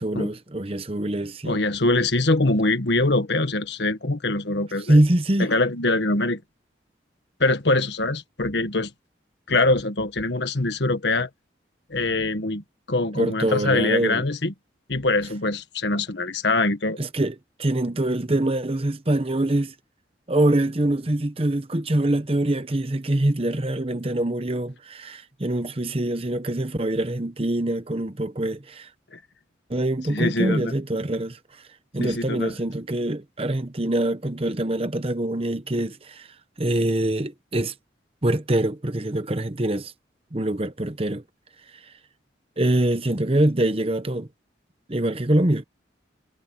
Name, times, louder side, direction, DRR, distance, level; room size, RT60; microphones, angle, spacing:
voice 1, 0.0-1.6 4.9-5.5 13.1-14.3 17.0-19.7 20.3-28.9 29.7-31.4 31.9-36.3 36.6-37.7 38.2-39.9 40.3-41.2 42.6-44.3 44.9-45.6, right 1 dB, 30° right, 1.0 m, -24 dB
voice 2, 1.4-5.0 5.4-6.4 7.4-8.9 9.5-11.3 11.9-14.5 14.9-17.0 29.1-29.2 30.1-30.7 32.0-32.5, left 2 dB, 70° left, 1.5 m, -23 dB
head